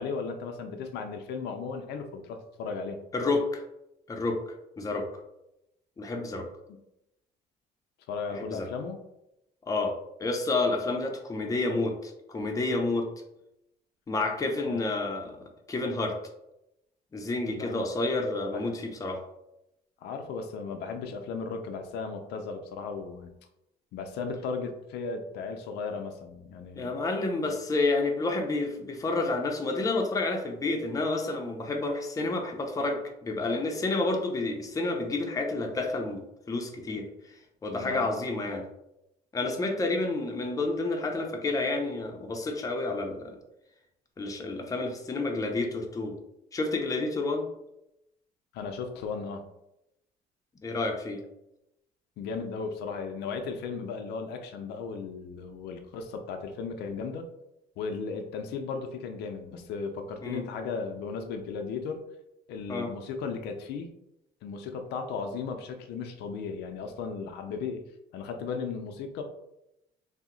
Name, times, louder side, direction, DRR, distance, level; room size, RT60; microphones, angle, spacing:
voice 1, 0.0-3.0 8.1-9.0 14.6-14.8 17.5-17.9 18.4-18.8 20.0-23.3 23.9-27.0 27.4-27.5 37.8-38.1 48.5-49.4 52.2-57.3 57.8-62.0 62.5-63.9 64.4-67.8 68.1-69.2, left 5 dB, 80° left, 5 dB, 0.4 m, -36 dB
voice 2, 3.1-3.6 4.1-4.4 4.8-5.1 6.0-6.5 8.4-8.7 9.7-9.9 10.2-13.1 14.1-15.4 15.7-16.2 17.1-19.2 26.8-36.2 36.5-37.4 37.6-38.6 39.3-43.4 44.2-46.1 46.5-47.5 50.6-51.2 60.2-60.4 62.7-62.9, left 2 dB, 20° left, 2 dB, 0.5 m, -29 dB
2.7 x 2.1 x 3.7 m, 0.86 s
cardioid pair, 110°, 17 cm